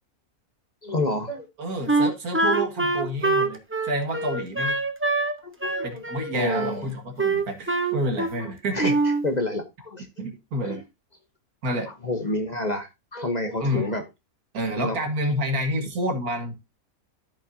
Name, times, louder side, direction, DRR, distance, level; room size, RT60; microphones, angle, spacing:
voice 1, 0.8-1.5 5.4-6.0 6.3-6.9 8.4-8.9 9.2-10.1 10.6-10.8 12.0-14.0 14.8-15.0, left 2 dB, 30° left, 1.0 m, -29 dB
voice 2, 1.6-4.8 5.8-9.0 10.2-10.8 11.6-11.9 13.6-13.9 14.5-16.6, equal, 75° right, 2.2 m, -29 dB
Wind instrument woodwind instrument, 1.9-5.3 5.6-6.8 7.2-8.5 8.8-9.3, right 3 dB, 10° right, 0.6 m, -24 dB
13.5 x 5.3 x 2.7 m
omnidirectional pair, 1.6 m